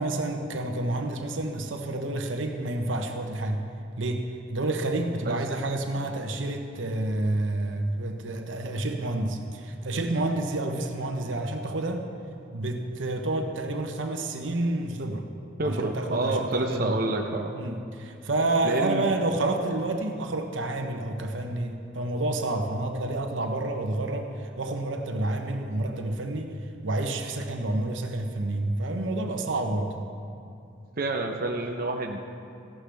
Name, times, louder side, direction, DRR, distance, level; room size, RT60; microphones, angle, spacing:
voice 1, 0.0-3.6 4.0-12.0 12.5-15.3 15.6-17.0 17.5-26.5 26.8-29.9, right 2 dB, 90° right, 4 dB, 1.0 m, -29 dB
voice 2, 15.6-17.5 18.6-19.0 31.0-32.2, right 2 dB, 50° right, 2 dB, 0.7 m, -28 dB
15.0 x 11.5 x 3.4 m, 2.5 s
head